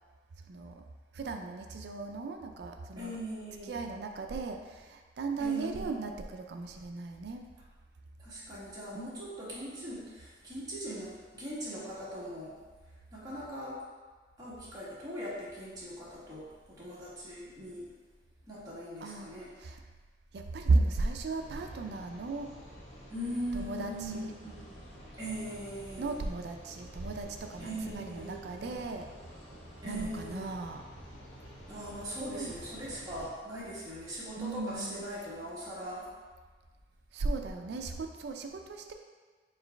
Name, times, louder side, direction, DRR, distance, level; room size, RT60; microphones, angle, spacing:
voice 1, 0.5-0.8 1.1-3.2 3.6-7.5 8.9-9.0 19.0-19.8 20.3-22.5 23.5-24.3 26.0-29.1 29.8-30.8 32.2-32.6 34.4-35.0 37.1-38.9, right 3 dB, 65° right, 4 dB, 0.4 m, -35 dB
voice 2, 3.0-3.8 5.4-5.9 8.2-12.6 13.1-13.8 14.4-17.9 18.5-19.5 23.1-24.6 25.2-26.1 27.6-28.8 29.8-30.5 31.7-36.1, equal, 20° right, -9 dB, 1.1 m, -40 dB
sound 1, 21.4-33.3, equal, 85° left, 1.1 m, -50 dB
4.7 x 3.8 x 2.2 m, 1.4 s
head